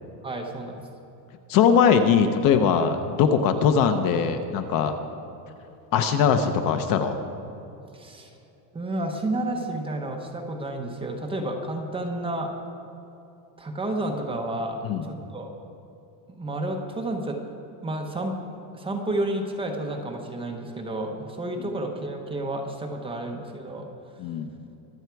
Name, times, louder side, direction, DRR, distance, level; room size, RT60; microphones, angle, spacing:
voice 1, 0.2-0.9 7.9-8.3 8.7-12.5 13.6-15.5 16.3-17.4 17.8-18.3 18.7-23.9, right 1 dB, 10° right, 2 dB, 0.9 m, -31 dB
voice 2, 1.5-4.9 5.9-7.2 14.8-15.1 21.6-21.7 24.2-24.5, left 7 dB, 45° left, 8 dB, 0.8 m, -21 dB
23.5 x 8.0 x 4.7 m, 2.9 s
cardioid pair, 170°, 48 cm